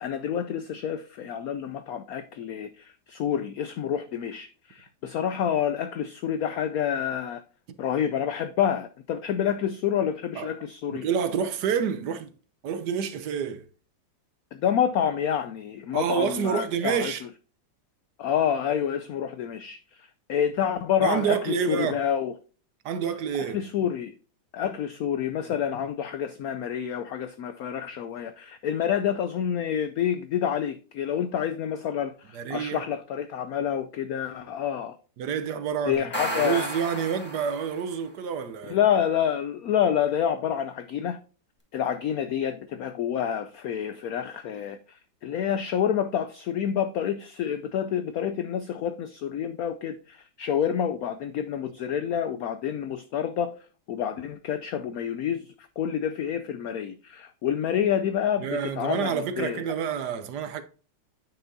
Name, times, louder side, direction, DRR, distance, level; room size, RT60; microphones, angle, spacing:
voice 1, 0.0-7.4 7.8-11.1 14.5-17.1 18.2-22.3 23.4-24.2 24.5-35.0 35.9-36.7 38.7-41.2 41.7-53.5 53.9-59.6, left 9 dB, 85° left, 0.7 m, -28 dB
voice 2, 10.9-12.3 12.6-13.6 15.9-17.2 21.0-22.0 22.8-23.6 32.3-32.8 35.2-38.8 58.4-60.6, right 7 dB, 65° right, 1.2 m, -28 dB
sound 1, 35.9-37.9, equal, 5° left, 1.9 m, -33 dB
9.2 x 5.8 x 2.6 m
omnidirectional pair, 2.1 m